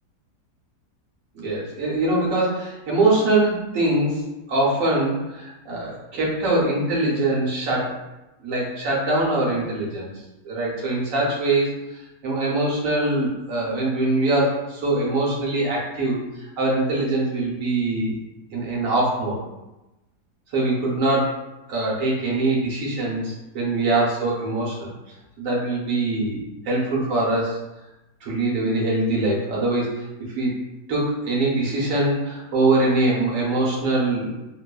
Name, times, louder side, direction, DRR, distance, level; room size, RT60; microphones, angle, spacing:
voice 1, 1.3-8.0 8.4-10.1 10.4-11.7 12.2-18.1 18.5-19.4 20.5-21.3 21.7-24.9 25.4-27.6 28.2-29.9 30.4-30.5 30.9-34.3, right 2 dB, 65° right, -4 dB, 1.0 m, -23 dB
2.9 x 2.0 x 2.2 m, 1.0 s
omnidirectional pair, 1.7 m